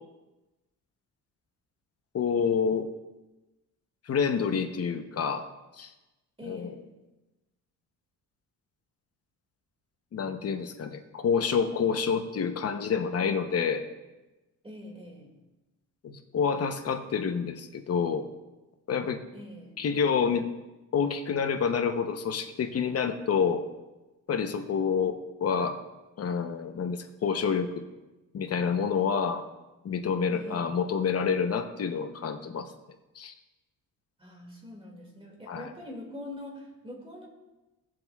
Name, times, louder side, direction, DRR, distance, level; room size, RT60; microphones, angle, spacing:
voice 1, 2.1-2.9 4.1-5.5 5.8-5.9 6.4-6.8 10.1-13.8 16.0-18.3 18.9-19.2 19.8-20.5 20.9-23.6 24.3-25.8 26.2-27.8 28.3-29.4 29.8-32.7 33.2-33.3 35.5-35.7, left 6 dB, 45° left, 7 dB, 0.8 m, -28 dB
voice 2, 6.4-6.8 14.6-15.3 19.3-19.7 30.3-30.7 34.2-37.3, left 1 dB, 15° right, 1 dB, 2.1 m, -43 dB
16.5 x 7.6 x 2.3 m, 1.1 s
cardioid pair, 125°, 33 cm